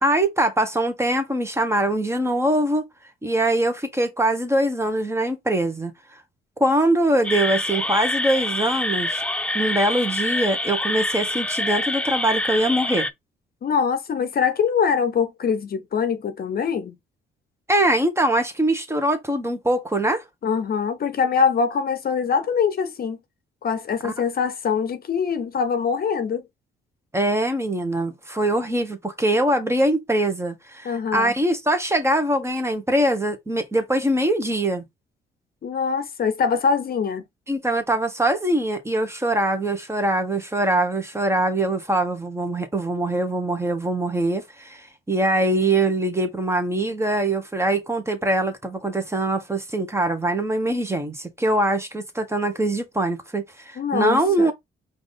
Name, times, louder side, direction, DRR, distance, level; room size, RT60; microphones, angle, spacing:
voice 1, 0.0-2.9 3.2-5.9 6.6-9.2 9.5-13.1 17.7-20.2 24.0-24.1 27.1-34.8 37.5-54.5, right 1 dB, 15° right, 1.2 m, -23 dB
sound 1, 7.2-13.1, left 1 dB, 5° left, 0.4 m, -26 dB
voice 2, 13.6-16.9 20.4-23.2 23.6-26.4 30.8-31.3 35.6-37.2 53.8-54.5, left 6 dB, 50° left, 0.8 m, -23 dB
4.7 x 2.6 x 3.8 m
cardioid pair, 90°, 20 cm